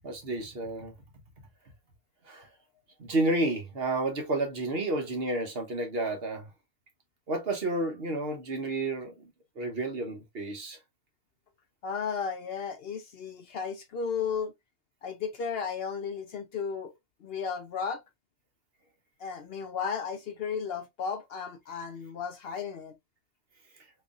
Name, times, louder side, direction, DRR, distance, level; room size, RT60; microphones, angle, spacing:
voice 1, 0.0-0.9 2.3-2.5 3.0-6.5 7.3-9.3 9.6-10.8, right 2 dB, 55° right, 1.2 m, -31 dB
voice 2, 11.8-14.5 15.0-16.9 17.2-18.0 19.2-22.9, left 6 dB, 60° left, 0.7 m, -34 dB
3.8 x 3.1 x 2.4 m
omnidirectional pair, 1.3 m